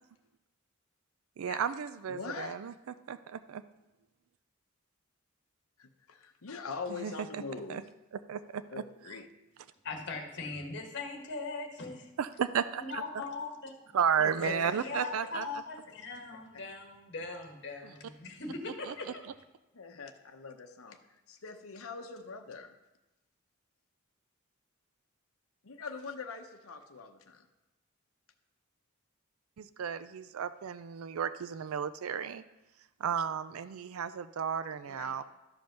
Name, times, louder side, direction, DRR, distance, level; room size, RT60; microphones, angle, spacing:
voice 1, 1.4-2.7 3.1-3.6 6.9-7.4 7.7-7.8 8.3-8.6 12.2-13.0 13.9-15.5 17.8-17.9 18.8-18.9 29.6-32.4 33.0-35.2, right 7 dB, 75° right, 13 dB, 0.4 m, -33 dB
voice 2, 2.1-2.5 5.8-7.8 8.7-9.3 14.2-14.7 19.7-21.0 21.3-22.7 25.6-27.5 34.8-35.2, left 4 dB, 80° left, 5 dB, 0.8 m, -43 dB
voice 3, 9.8-12.1 12.8-13.9 14.4-19.2, left 3 dB, 55° left, 3 dB, 1.5 m, -40 dB
12.5 x 5.3 x 5.8 m, 1.0 s
head